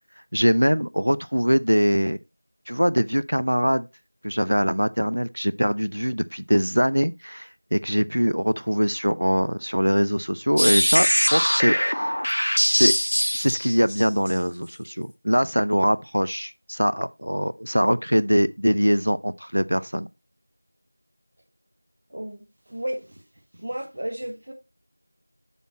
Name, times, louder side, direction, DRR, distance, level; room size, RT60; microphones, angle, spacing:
voice 1, 0.3-2.2 2.7-3.9 4.2-12.1 12.7-12.9 13.3-20.1, equal, 75° right, 0.5 m, -22 dB
sound 1, 10.6-14.3, equal, 55° left, 0.7 m, -22 dB
voice 2, 22.1-22.4 22.7-23.2 23.6-24.5, right 1 dB, 15° right, 0.7 m, -32 dB
7.1 x 5.9 x 4.1 m
figure-of-eight pair, 180°, 0 cm